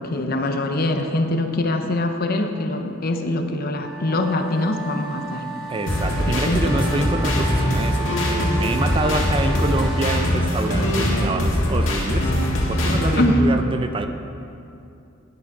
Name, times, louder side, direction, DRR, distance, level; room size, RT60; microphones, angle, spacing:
voice 1, 0.0-5.5 6.3-6.6 13.2-13.5, left 1 dB, 50° left, 5 dB, 0.7 m, -23 dB
sound 1, 3.8-10.2, right 2 dB, ahead, 1.9 m, -34 dB
voice 2, 5.7-12.3 12.7-14.1, right 2 dB, 25° right, 7 dB, 0.4 m, -26 dB
sound 2, 5.9-13.3, left 1 dB, 75° left, 1.8 m, -22 dB
9.9 x 6.8 x 6.0 m, 2.7 s
head